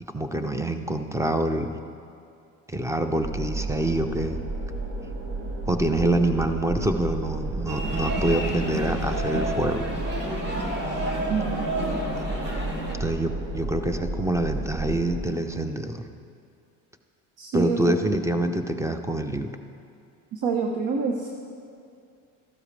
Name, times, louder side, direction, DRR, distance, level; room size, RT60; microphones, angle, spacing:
voice 1, 0.1-1.8 2.7-4.4 5.7-9.9 13.0-16.0 17.5-19.5, right 1 dB, 5° right, 7 dB, 0.7 m, -26 dB
sound 1, 3.2-15.2, right 2 dB, 80° right, 2.3 m, -32 dB
sound 2, 7.7-12.9, right 1 dB, 25° right, 2.0 m, -30 dB
voice 2, 11.3-11.7 17.4-17.8 20.3-21.3, right 5 dB, 55° right, 2 dB, 1.1 m, -27 dB
14.5 x 12.0 x 3.4 m, 2.4 s
supercardioid pair, 85°, 45 cm